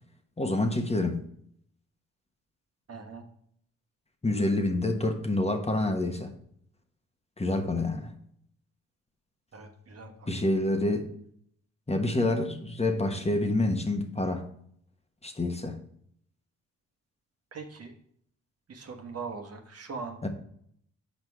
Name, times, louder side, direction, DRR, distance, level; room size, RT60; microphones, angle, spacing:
voice 1, 0.4-1.2 4.2-6.3 7.4-8.1 10.3-11.1 11.9-14.4 15.2-15.8 20.2-20.3, left 2 dB, 20° left, 5 dB, 1.2 m, -27 dB
voice 2, 2.9-3.3 9.5-10.4 17.5-17.9 18.7-20.2, right 4 dB, 50° right, 4 dB, 1.3 m, -41 dB
6.4 x 5.2 x 4.7 m, 0.67 s
supercardioid pair, 55°, 32 cm